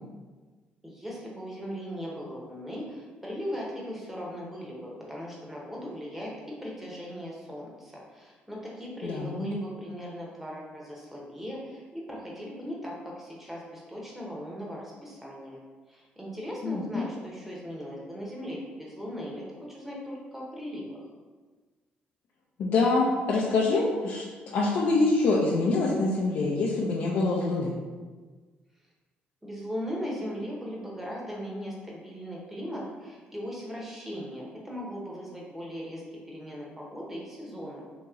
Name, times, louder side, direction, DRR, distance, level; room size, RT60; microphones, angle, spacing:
voice 1, 0.8-6.3 6.6-15.6 15.9-21.0 29.4-37.8, equal, 5° right, -3 dB, 1.0 m, -38 dB
voice 2, 9.0-9.5 16.6-17.1 22.6-24.2 24.5-27.7, left 3 dB, 65° left, -5 dB, 0.5 m, -25 dB
3.0 x 2.8 x 3.6 m, 1.4 s
cardioid pair, 95°, 4 cm